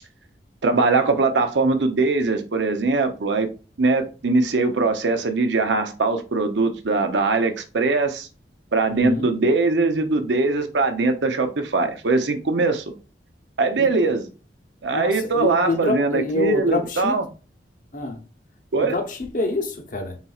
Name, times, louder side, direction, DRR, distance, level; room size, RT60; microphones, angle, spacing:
voice 1, 0.6-3.5 3.8-8.3 8.7-13.0 13.6-14.3 14.8-17.2 18.7-18.9, right 3 dB, 90° right, 0.7 m, -21 dB
voice 2, 8.9-9.3 13.8-13.9 14.9-17.2 17.9-18.2 18.8-20.2, left 2 dB, 50° left, 0.8 m, -26 dB
4.2 x 4.0 x 2.4 m
head